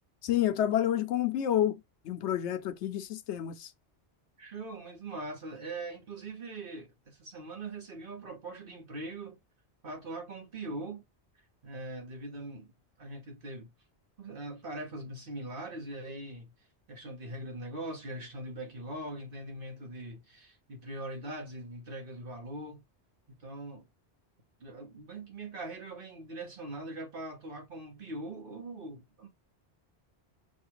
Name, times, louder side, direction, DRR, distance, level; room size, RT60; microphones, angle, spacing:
voice 1, 0.2-3.7, left 11 dB, 80° left, 0.9 m, -29 dB
voice 2, 4.4-9.4 9.8-11.0 11.6-12.7 13.0-13.7 14.2-16.5 16.9-22.8 23.3-23.8 24.6-29.3, right 2 dB, 55° right, 1.2 m, -41 dB
6.3 x 2.4 x 2.9 m
omnidirectional pair, 1.1 m